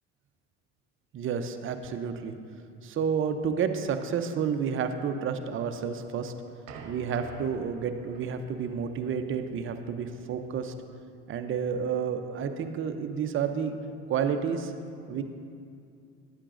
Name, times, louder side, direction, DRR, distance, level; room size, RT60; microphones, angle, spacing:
voice 1, 1.1-2.4 2.8-6.3 6.8-10.7 11.3-13.8 14.1-14.7 15.1-15.2, right 7 dB, 40° right, 7 dB, 0.7 m, -30 dB
sound 1, 6.0-10.9, right 4 dB, 65° right, 1.0 m, -49 dB
10.5 x 8.3 x 2.6 m, 2.4 s
hypercardioid pair, 75°, 31 cm